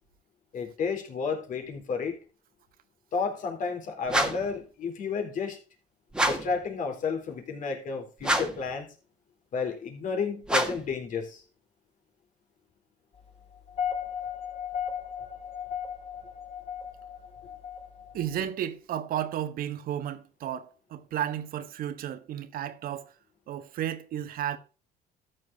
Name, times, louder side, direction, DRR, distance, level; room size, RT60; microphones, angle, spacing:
voice 1, 0.5-2.2 3.1-5.6 6.2-8.9 9.5-11.4, left 5 dB, 50° left, 3.7 m, -31 dB
sound 1, 4.1-4.6 6.1-6.6 8.2-8.7 10.4-10.9, right 1 dB, 5° right, 1.9 m, -27 dB
sound 2, 13.5-18.4, left 8 dB, 35° left, 4.2 m, -36 dB
voice 2, 18.1-23.1 23.5-24.6, right 10 dB, 60° right, 1.4 m, -33 dB
13.5 x 7.6 x 3.6 m
cardioid pair, 110°, 17 cm